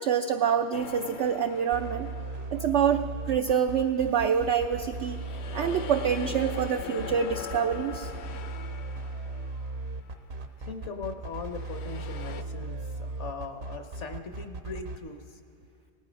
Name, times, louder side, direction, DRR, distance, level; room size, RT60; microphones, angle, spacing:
voice 1, 0.0-2.1 2.5-5.2 5.5-8.1, right 7 dB, 80° right, 7 dB, 0.6 m, -26 dB
sound 1, 0.7-3.2 3.8-10.2 11.4-12.4, left 8 dB, 70° left, 0.6 m, -42 dB
sound 2, 1.7-15.0, right 3 dB, 55° right, 0.8 m, -37 dB
voice 2, 10.6-15.4, left 4 dB, 55° left, 6 dB, 1.0 m, -40 dB
18.5 x 11.5 x 5.1 m, 2.6 s
omnidirectional pair, 1.7 m